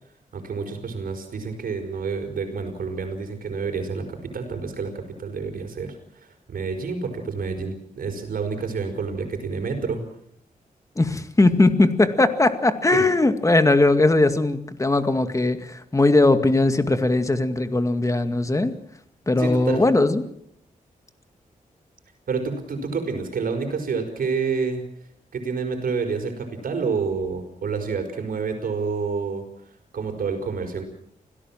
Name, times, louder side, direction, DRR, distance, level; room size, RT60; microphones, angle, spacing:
voice 1, 0.3-10.0 12.9-13.1 19.4-19.8 22.3-24.8 25.3-30.8, right 5 dB, 80° right, 6 dB, 5.2 m, -28 dB
voice 2, 11.0-18.7 19.3-20.2, left 2 dB, 20° left, 10 dB, 2.1 m, -19 dB
26.0 x 17.0 x 7.4 m, 0.70 s
wide cardioid pair, 90°, 15 cm